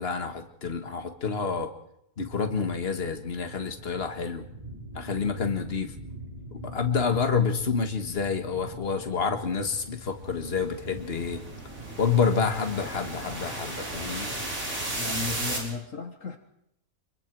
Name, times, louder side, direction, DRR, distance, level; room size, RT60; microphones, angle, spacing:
voice 1, 0.0-1.7 2.2-4.5 5.0-5.9 6.5-11.4 12.0-14.3, left 5 dB, 40° left, 5 dB, 1.9 m, -28 dB
sound 1, 2.2-15.6, right 1 dB, 25° right, 7.3 m, -45 dB
sound 2, 9.6-15.6, right 1 dB, 65° right, 5.2 m, -35 dB
voice 2, 15.0-16.4, left 4 dB, 60° left, 5 dB, 1.8 m, -35 dB
26.0 x 22.5 x 4.8 m, 0.78 s
omnidirectional pair, 1.6 m